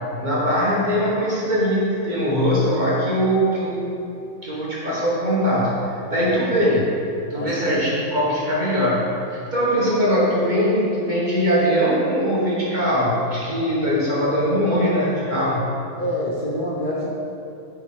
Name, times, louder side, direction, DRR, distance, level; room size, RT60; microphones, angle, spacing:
voice 1, 0.2-4.0 4.4-6.8 7.3-15.7, equal, 35° right, -7 dB, 1.3 m, -21 dB
voice 2, 7.3-7.8 13.6-13.8 16.0-17.1, left 1 dB, 40° left, -7 dB, 0.9 m, -28 dB
7.7 x 4.5 x 3.8 m, 2.9 s
omnidirectional pair, 1.5 m